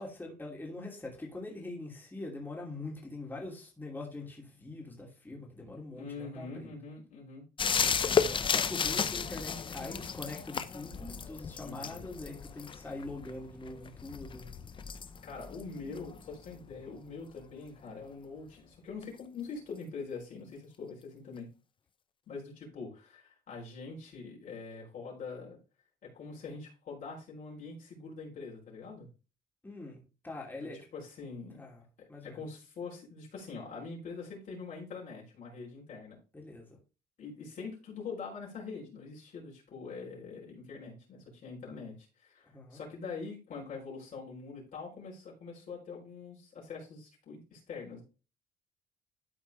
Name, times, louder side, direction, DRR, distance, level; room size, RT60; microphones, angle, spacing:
voice 1, 0.0-6.7 7.8-14.5 29.6-30.9 31.5-31.8 32.1-32.4 36.3-36.7 42.4-42.8, left 2 dB, 10° left, -2 dB, 2.7 m, -43 dB
voice 2, 5.9-7.4 9.0-9.1 11.6-11.9 15.2-21.5 22.3-25.6 26.0-29.1 30.6-31.6 32.0-36.2 37.2-48.0, left 4 dB, 50° left, -3 dB, 4.0 m, -44 dB
sound 1, 7.6-17.0 19.0-19.1, left 6 dB, 30° left, 0.6 m, -34 dB
12.5 x 4.4 x 3.4 m, 0.33 s
cardioid pair, 110°, 17 cm